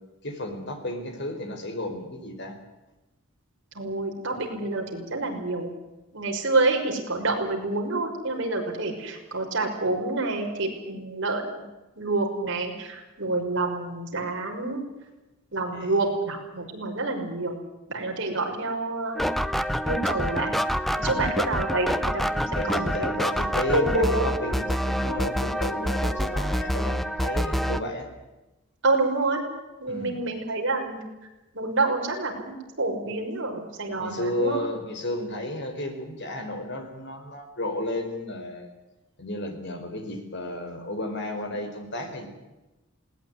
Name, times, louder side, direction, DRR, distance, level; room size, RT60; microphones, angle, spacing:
voice 1, 0.2-2.6 15.7-16.1 18.3-18.4 21.1-21.4 22.5-28.1 29.9-30.2 34.0-38.7 39.2-42.3, left 1 dB, 50° left, 5 dB, 4.8 m, -33 dB
voice 2, 3.7-5.7 6.1-11.4 12.0-14.8 15.5-17.6 17.9-19.3 19.8-20.6 20.9-23.1 23.7-24.2 28.8-29.4 29.8-31.0 31.5-32.5 32.8-34.6, right 2 dB, 55° right, 1 dB, 5.9 m, -27 dB
sound 1, 19.2-27.8, equal, ahead, 0.8 m, -27 dB
20.5 x 19.0 x 9.6 m, 1.0 s
head